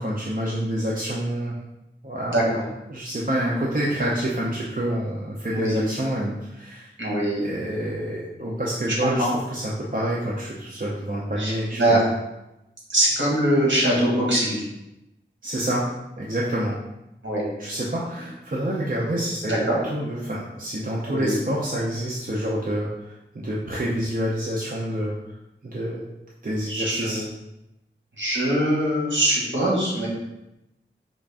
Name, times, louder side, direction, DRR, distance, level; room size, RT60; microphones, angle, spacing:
voice 1, 0.0-1.6 2.0-2.5 2.9-6.9 7.4-12.0 15.4-15.9 16.2-16.7 17.6-25.1 25.6-26.0 26.4-27.2, right 1 dB, 45° right, -5 dB, 0.6 m, -27 dB
voice 2, 7.0-7.4 9.0-9.3 11.4-12.0 12.9-14.6 17.2-17.4 19.4-19.8 21.1-21.3 26.7-27.2 28.2-30.1, right 1 dB, 65° right, -5 dB, 1.6 m, -22 dB
5.1 x 2.5 x 3.5 m, 0.92 s
wide cardioid pair, 45°, 20 cm